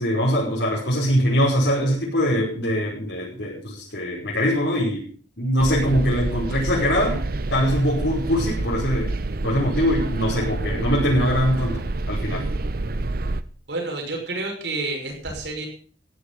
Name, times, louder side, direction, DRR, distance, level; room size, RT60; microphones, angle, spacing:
voice 1, 0.0-5.1 5.4-7.2 7.5-9.1 9.4-12.5, equal, 80° left, -6 dB, 5.4 m, -22 dB
sound 1, 5.6-13.4, right 2 dB, 55° right, 0.8 m, -27 dB
voice 2, 13.7-15.7, right 2 dB, 85° right, 1 dB, 6.1 m, -29 dB
15.0 x 10.5 x 5.5 m, 0.42 s
head